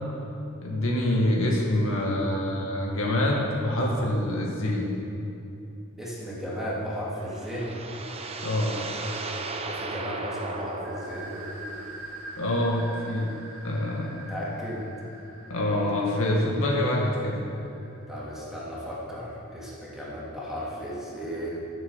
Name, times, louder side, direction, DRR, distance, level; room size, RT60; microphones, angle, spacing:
voice 1, 0.6-4.9 8.4-8.8 12.4-13.3 13.6-14.1 15.5-17.3, left 1 dB, 65° left, -2 dB, 2.0 m, -25 dB
voice 2, 6.0-7.8 9.6-11.3 14.3-14.8 18.1-21.6, equal, ahead, -8 dB, 2.9 m, -35 dB
sound 1, 6.9-12.1, right 3 dB, 30° right, 0.9 m, -36 dB
sound 2, 10.8-18.3, right 1 dB, 65° right, 2.2 m, -44 dB
14.0 x 7.1 x 7.3 m, 2.8 s
head